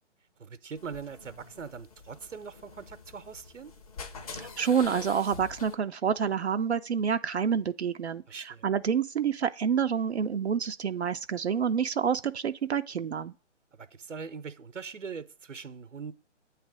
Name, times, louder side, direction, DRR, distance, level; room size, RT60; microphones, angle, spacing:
voice 1, 0.4-3.7 8.3-8.7 13.8-16.1, right 5 dB, 80° right, 0.9 m, -41 dB
sound 1, 0.8-5.8, left 5 dB, 30° left, 0.8 m, -45 dB
voice 2, 4.4-13.3, right 7 dB, 60° right, 0.5 m, -28 dB
8.5 x 3.3 x 6.2 m
figure-of-eight pair, 145°, 37 cm